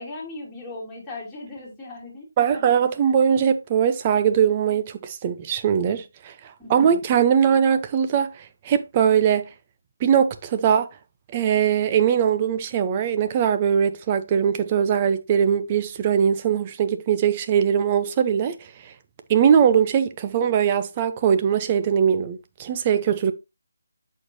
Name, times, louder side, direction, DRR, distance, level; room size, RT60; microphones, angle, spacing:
voice 1, 0.0-2.7 6.6-7.0, left 2 dB, 5° left, 3.2 m, -38 dB
voice 2, 2.4-6.3 6.7-9.5 10.0-10.9 11.3-18.5 19.3-23.3, right 8 dB, 25° right, 0.7 m, -21 dB
7.8 x 6.5 x 2.7 m
figure-of-eight pair, 160°, 0 cm